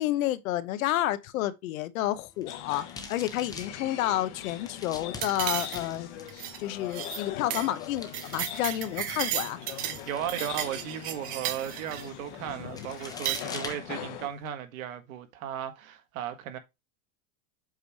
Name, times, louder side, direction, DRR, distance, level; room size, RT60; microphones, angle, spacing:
voice 1, 0.0-6.1 6.6-9.6 12.6-12.9, left 13 dB, 75° left, 1.0 m, -30 dB
sound 1, 2.1-14.5, left 4 dB, 10° left, 0.7 m, -47 dB
sound 2, 2.5-14.3, left 11 dB, 55° left, 1.3 m, -42 dB
sound 3, 5.2-6.0 6.3-6.6 6.9-7.2 7.5-7.7 8.0-10.0 10.3-12.1 13.0-13.4, right 12 dB, 25° right, 0.3 m, -34 dB
voice 2, 10.1-16.6, right 10 dB, 75° right, 1.7 m, -36 dB
8.0 x 3.3 x 4.6 m
supercardioid pair, 150°, 41 cm